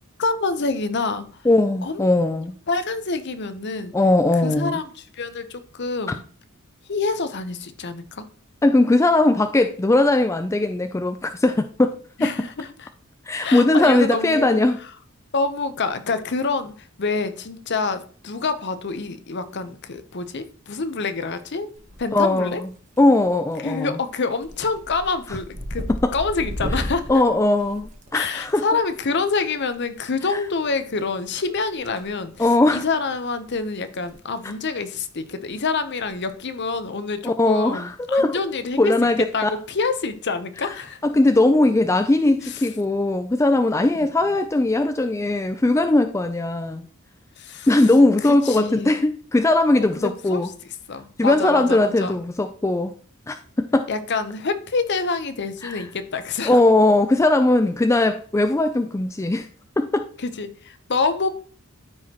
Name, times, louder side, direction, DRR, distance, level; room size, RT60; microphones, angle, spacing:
voice 1, 0.2-1.2 1.8-2.0 2.7-3.9 4.4-6.2 6.9-8.2 12.2-12.9 13.4-14.6 15.3-21.7 22.0-22.6 23.6-27.2 28.1-32.5 32.7-38.9 39.3-41.0 42.4-42.6 47.4-47.9 48.3-49.0 50.0-50.5 50.9-52.2 53.9-56.6 60.2-61.3, left 4 dB, 50° left, 0.7 m, -27 dB
voice 2, 1.5-2.5 3.9-4.8 8.6-11.9 12.2-12.3 13.3-14.8 22.1-22.7 23.0-24.0 26.0-26.1 27.1-28.6 30.3-30.4 32.4-32.9 37.2-38.4 38.8-39.5 40.6-40.7 41.0-46.9 47.7-50.5 51.2-52.9 53.3-53.9 55.6-55.8 56.4-59.5 59.8-60.1, left 2 dB, 15° left, 0.3 m, -19 dB
sound 1, 21.7-22.3 22.6-23.1 23.5-23.8 24.1-28.5 29.9-30.0 31.3-32.1 32.3-32.6 33.1-33.2 33.4-33.5 33.9-34.1 34.4-34.5 36.0-36.3, equal, 35° right, 1.3 m, -33 dB
13.0 x 4.8 x 2.9 m
head